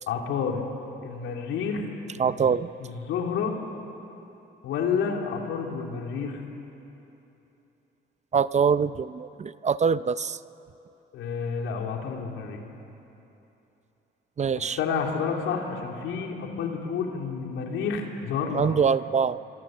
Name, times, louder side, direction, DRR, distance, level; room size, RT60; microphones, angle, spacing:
voice 1, 0.1-0.6 1.0-1.9 2.8-3.5 4.6-6.4 11.1-12.6 14.6-18.8, left 6 dB, 90° left, 1 dB, 3.1 m, -29 dB
voice 2, 2.2-2.7 8.3-10.4 14.4-14.8 18.5-19.4, right 6 dB, 35° right, 16 dB, 0.6 m, -24 dB
27.5 x 24.0 x 7.8 m, 3.0 s
cardioid pair, 90°, 20 cm